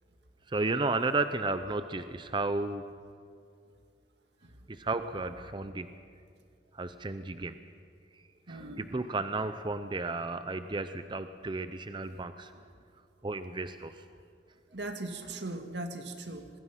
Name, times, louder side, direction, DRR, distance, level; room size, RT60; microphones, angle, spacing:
voice 1, 0.5-2.9 4.7-5.9 6.7-7.6 8.5-12.5 13.2-14.0, right 3 dB, 25° right, 10 dB, 0.6 m, -33 dB
voice 2, 8.5-8.9 12.5-12.6 14.7-16.5, right 2 dB, 75° right, 6 dB, 2.0 m, -39 dB
26.5 x 21.0 x 5.8 m, 2.3 s
head